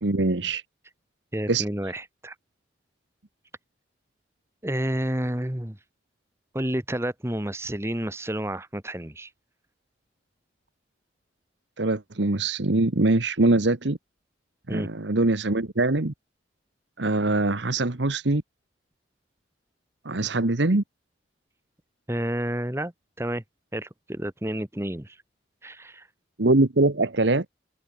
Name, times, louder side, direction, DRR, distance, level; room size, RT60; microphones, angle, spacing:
voice 1, 0.0-0.6 1.5-1.6 11.8-14.0 14.7-16.1 17.0-18.4 20.0-20.8 26.4-27.4, right 2 dB, 75° right, 1.3 m, -23 dB
voice 2, 1.3-2.3 4.6-5.8 6.5-9.3 14.7-14.9 22.1-22.9 23.2-23.4 23.7-25.2 25.6-26.1, right 1 dB, 15° right, 1.3 m, -30 dB
open air
head